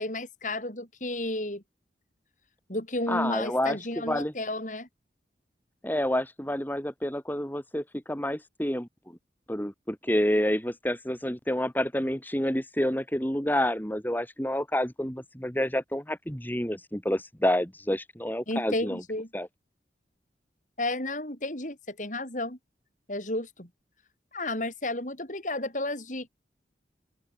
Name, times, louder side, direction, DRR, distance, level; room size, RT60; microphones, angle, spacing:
voice 1, 0.0-1.6 2.7-4.9 18.5-19.3 20.8-22.6 23.1-23.7 24.3-26.3, left 1 dB, 45° left, 7.3 m, -32 dB
voice 2, 3.1-3.8 4.0-4.3 5.8-8.9 9.5-19.0 19.3-19.5, left 1 dB, 10° left, 3.8 m, -28 dB
open air
head